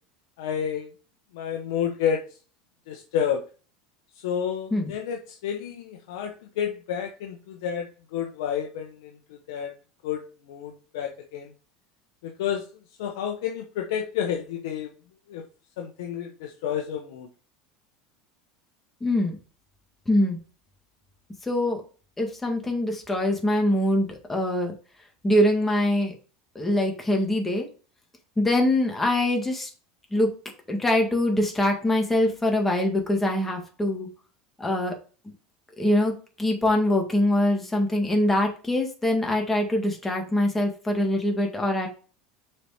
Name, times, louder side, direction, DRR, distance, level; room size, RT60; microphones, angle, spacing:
voice 1, 0.4-0.9 1.3-2.2 2.9-3.4 4.2-9.7 10.0-11.5 12.2-12.6 13.0-14.9 15.3-15.4 15.8-17.3, left 8 dB, 85° left, 3 dB, 1.0 m, -30 dB
voice 2, 19.0-19.4 20.1-20.4 21.4-21.8 22.2-24.7 25.2-26.1 26.6-27.7 28.4-29.7 30.1-30.3 30.7-34.1 34.6-35.0 35.8-41.9, left 1 dB, 10° left, 2 dB, 1.9 m, -23 dB
6.6 x 4.6 x 4.3 m, 0.37 s
supercardioid pair, 130°, 2 cm